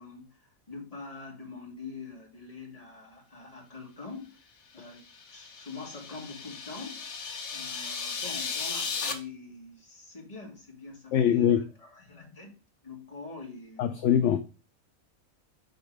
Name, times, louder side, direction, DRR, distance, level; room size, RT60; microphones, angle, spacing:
voice 1, 0.0-7.0 7.5-12.6 12.8-13.9, left 4 dB, 25° left, -1 dB, 2.1 m, -44 dB
sound 1, 5.0-9.1, left 5 dB, 85° left, 1.4 m, -36 dB
voice 2, 11.1-11.6 13.8-14.4, left 9 dB, 65° left, 7 dB, 0.9 m, -22 dB
5.3 x 4.4 x 4.9 m, 0.33 s
omnidirectional pair, 1.5 m